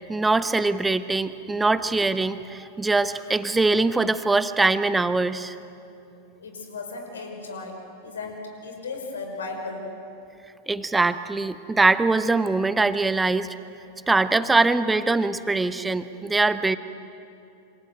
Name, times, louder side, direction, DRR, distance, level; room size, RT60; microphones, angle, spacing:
voice 1, 0.1-5.6 10.7-13.6 14.1-16.8, right 3 dB, 10° right, 13 dB, 1.0 m, -22 dB
voice 2, 6.4-9.9, left 3 dB, 65° left, 4 dB, 5.3 m, -36 dB
27.5 x 26.5 x 8.0 m, 2.7 s
figure-of-eight pair, 90°, 0 cm